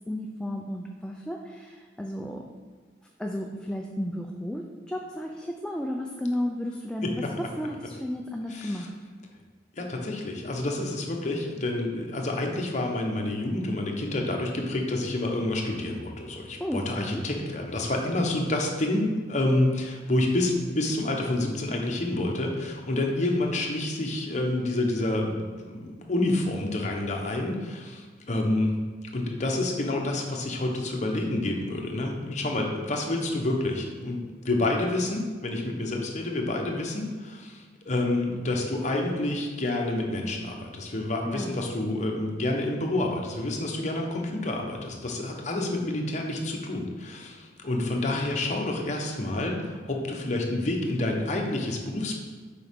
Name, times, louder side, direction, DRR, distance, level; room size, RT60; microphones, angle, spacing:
voice 1, 0.1-2.4 3.2-8.9 16.6-17.2 41.2-41.7, left 1 dB, 5° left, 0 dB, 0.4 m, -33 dB
voice 2, 8.5-8.9 9.8-28.7 29.1-52.2, left 2 dB, 40° left, 1 dB, 0.9 m, -28 dB
6.8 x 4.9 x 3.6 m, 1.4 s
head